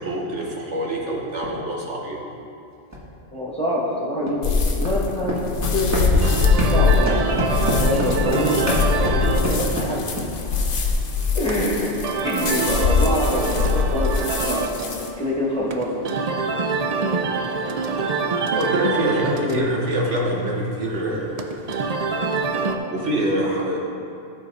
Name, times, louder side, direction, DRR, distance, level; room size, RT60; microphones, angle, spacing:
voice 1, 0.0-2.2 16.7-16.8 18.5-21.4 22.4-22.6 22.9-23.8, right 1 dB, 75° right, -2 dB, 1.5 m, -25 dB
sound 1, 1.3-1.5 2.9-3.0 4.3-4.4 4.8-5.0 5.2-6.8 7.1-10.3, equal, 15° right, 1.4 m, -25 dB
voice 2, 3.3-5.3 5.7-6.2 6.5-7.2 7.7-10.0 11.3-11.9 12.2-15.9 19.4-19.7, left 1 dB, 5° left, -7 dB, 1.3 m, -26 dB
sound 2, 4.4-15.1, left 5 dB, 90° left, 1.2 m, -23 dB
sound 3, 6.1-22.8, right 4 dB, 50° right, 0.5 m, -27 dB
13.5 x 4.6 x 4.1 m, 2.6 s
omnidirectional pair, 1.2 m